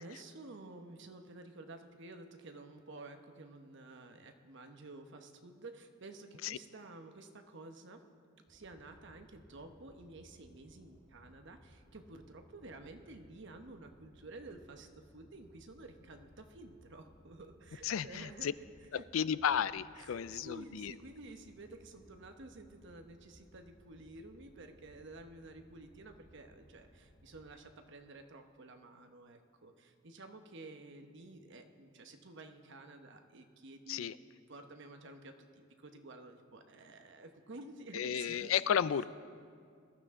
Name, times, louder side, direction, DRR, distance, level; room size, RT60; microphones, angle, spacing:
voice 1, 0.0-8.0 8.5-18.5 18.9-19.1 20.0-34.2 34.5-38.8, right 2 dB, 65° right, 6 dB, 1.0 m, -52 dB
sound 1, 8.5-27.5, equal, 25° left, 4.5 m, -62 dB
voice 2, 17.8-18.5 18.9-20.9 33.9-34.2 37.9-39.1, left 8 dB, 85° left, 17 dB, 0.4 m, -33 dB
20.5 x 13.0 x 3.7 m, 2.2 s
head